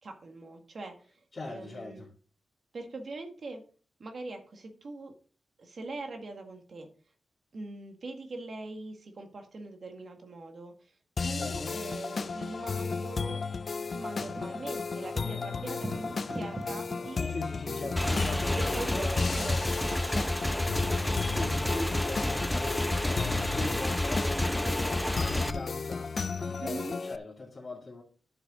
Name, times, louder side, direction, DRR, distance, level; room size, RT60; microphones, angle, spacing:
voice 1, 0.0-2.0 2.7-3.6 4.0-5.1 5.6-6.9 7.5-10.9 11.2-13.4 13.9-17.4 18.5-20.6 26.6-27.0, right 2 dB, 60° right, 1.8 m, -42 dB
voice 2, 1.3-2.1 11.3-11.8 17.3-19.3 21.3-28.0, left 2 dB, 35° left, 2.6 m, -41 dB
sound 1, 11.2-27.2, left 4 dB, 50° left, 0.5 m, -34 dB
sound 2, 14.2-19.5, right 1 dB, 25° right, 1.4 m, -43 dB
Motorcycle / Engine, 18.0-25.5, left 1 dB, 10° left, 0.7 m, -29 dB
10.0 x 7.2 x 3.8 m
cardioid pair, 65°, 0 cm